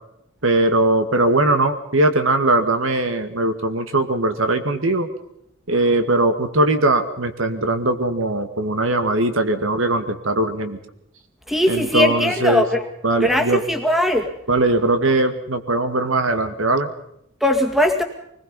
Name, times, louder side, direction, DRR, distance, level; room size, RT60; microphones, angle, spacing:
voice 1, 0.4-5.1 5.7-10.8 11.7-12.7 13.0-13.6 14.5-16.9, right 2 dB, 75° right, 8 dB, 2.2 m, -20 dB
voice 2, 11.5-12.8 13.2-14.3 17.4-18.0, left 1 dB, ahead, 5 dB, 2.1 m, -19 dB
25.5 x 20.5 x 5.5 m, 0.77 s
head